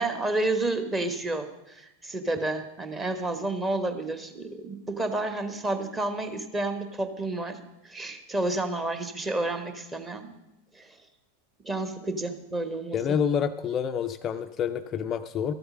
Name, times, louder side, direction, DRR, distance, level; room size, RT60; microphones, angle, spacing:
voice 1, 0.0-7.6 7.8-10.3 10.7-11.0 11.6-13.2, right 2 dB, 15° right, 8 dB, 1.1 m, -30 dB
voice 2, 12.9-15.5, left 7 dB, 30° left, 9 dB, 0.4 m, -28 dB
13.0 x 7.8 x 6.4 m, 0.91 s
figure-of-eight pair, 90°, 0 cm